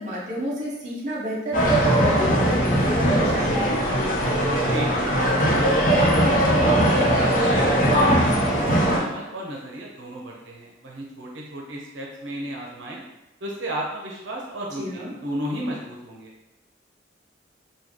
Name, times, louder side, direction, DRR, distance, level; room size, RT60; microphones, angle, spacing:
voice 1, 0.0-3.7 14.7-15.1, equal, 40° right, -5 dB, 0.7 m, -31 dB
sound 1, 1.5-9.0, equal, 45° left, 0.7 m, -20 dB
voice 2, 4.4-13.0 13.4-16.3, right 1 dB, 85° right, -2 dB, 0.7 m, -34 dB
3.2 x 2.3 x 3.6 m, 0.94 s
head